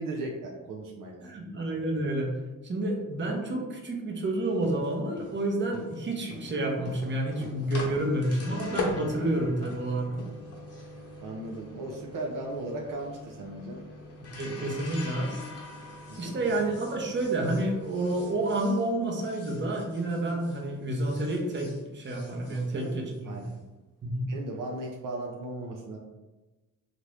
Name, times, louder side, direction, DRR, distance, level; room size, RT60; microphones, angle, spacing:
voice 1, 0.0-1.3 11.2-13.8 16.1-16.5 22.5-23.0 23.2-23.5 24.2-26.0, right 2 dB, 65° right, -1 dB, 0.6 m, -37 dB
voice 2, 1.2-2.3 2.6-10.1 14.2-15.5 16.2-23.4 24.0-24.3, right 1 dB, 30° right, 0 dB, 0.8 m, -29 dB
sound 1, 4.4-20.6 20.9-23.5, left 2 dB, 45° left, 1.0 m, -42 dB
2.8 x 2.5 x 3.2 m, 1.1 s
cardioid pair, 80°, 36 cm